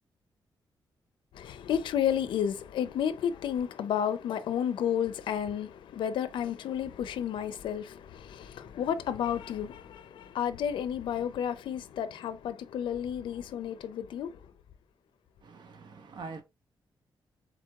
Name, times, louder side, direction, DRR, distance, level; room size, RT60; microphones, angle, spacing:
voice 1, 1.3-14.4, left 9 dB, 90° left, 0.5 m, -32 dB
voice 2, 15.4-16.4, right 4 dB, 65° right, 1.0 m, -44 dB
4.5 x 3.9 x 2.3 m
cardioid pair, 105°, 8 cm